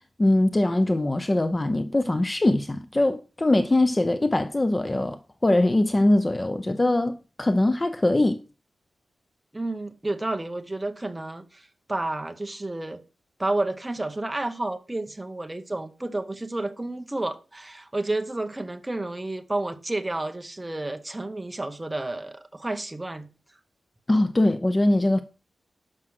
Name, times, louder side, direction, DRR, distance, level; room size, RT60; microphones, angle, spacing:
voice 1, 0.2-8.4 24.1-25.2, left 1 dB, 15° left, 0.6 m, -22 dB
voice 2, 9.5-13.0 13.4-23.3, right 2 dB, 15° right, 1.0 m, -31 dB
11.0 x 6.1 x 5.9 m
wide cardioid pair, 175°, 0 cm